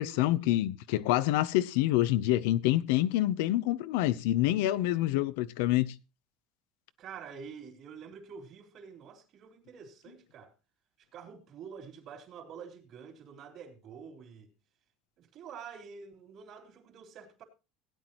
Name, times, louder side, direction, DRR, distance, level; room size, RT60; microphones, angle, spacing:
voice 1, 0.0-5.9, left 15 dB, 80° left, 0.8 m, -27 dB
voice 2, 7.0-10.5 11.1-14.5 15.2-17.4, right 6 dB, 50° right, 3.6 m, -47 dB
17.5 x 9.6 x 3.1 m
supercardioid pair, 130°, 0 cm